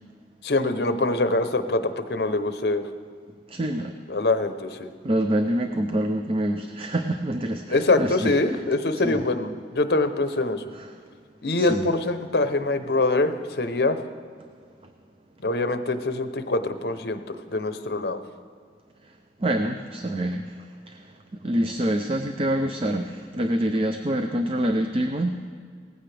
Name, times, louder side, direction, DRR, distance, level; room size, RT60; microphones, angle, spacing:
voice 1, 0.4-2.8 4.1-4.9 7.7-10.6 11.4-14.0 15.4-18.2, left 2 dB, 60° left, 9 dB, 0.8 m, -24 dB
voice 2, 3.5-3.9 5.0-8.3 9.0-9.2 11.6-11.8 19.4-21.1 21.4-25.4, right 1 dB, 30° right, 5 dB, 0.5 m, -26 dB
18.0 x 15.0 x 3.4 m, 2.1 s
head